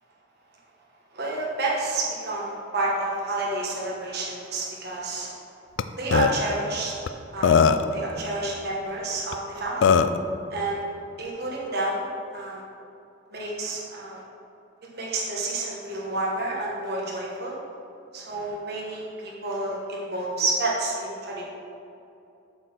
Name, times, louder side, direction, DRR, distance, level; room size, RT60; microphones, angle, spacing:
voice 1, 1.1-5.3 6.0-6.9 7.3-7.6 7.9-10.0 10.5-10.8 11.2-12.6 13.3-14.2 14.9-17.6 18.1-21.4, right 2 dB, 55° right, -4 dB, 1.2 m, -29 dB
Burping eructation, 5.8-5.9 6.1-6.3 7.1-7.2 7.4-7.9 9.3-9.4 9.8-10.2, left 6 dB, 65° left, 0.3 m, -18 dB
7.7 x 4.3 x 6.4 m, 2.7 s
head